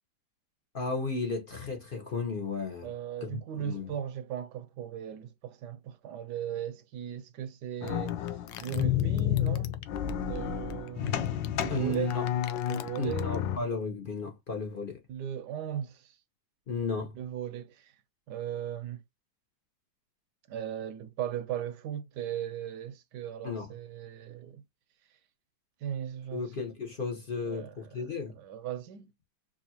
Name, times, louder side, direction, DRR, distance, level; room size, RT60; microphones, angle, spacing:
voice 1, 0.7-2.9 3.2-3.4 3.6-3.9 11.7-12.3 13.0-15.0 16.7-17.1 23.4-23.7 26.3-28.3, left 3 dB, 55° left, 0.6 m, -34 dB
voice 2, 2.8-8.2 8.6-9.7 10.1-11.3 11.6-12.1 12.7-13.4 15.1-16.2 17.1-17.9 18.3-19.0 20.5-24.6 25.8-26.5 27.4-27.7 28.0-29.1, right 10 dB, 70° right, 1.1 m, -37 dB
sound 1, 7.8-13.6, left 10 dB, 75° left, 1.2 m, -31 dB
4.7 x 2.6 x 2.8 m
omnidirectional pair, 2.1 m